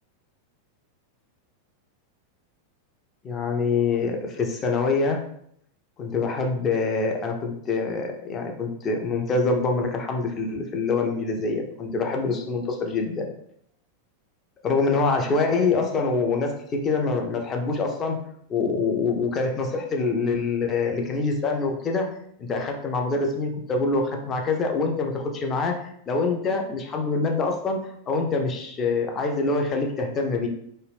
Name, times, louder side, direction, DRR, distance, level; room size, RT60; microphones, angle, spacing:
voice 1, 3.2-5.2 6.0-13.3 14.6-18.2 18.5-22.1 22.4-30.5, left 3 dB, 25° left, 3 dB, 0.4 m, -25 dB
2.3 x 2.1 x 3.2 m, 0.69 s
figure-of-eight pair, 90°, 0 cm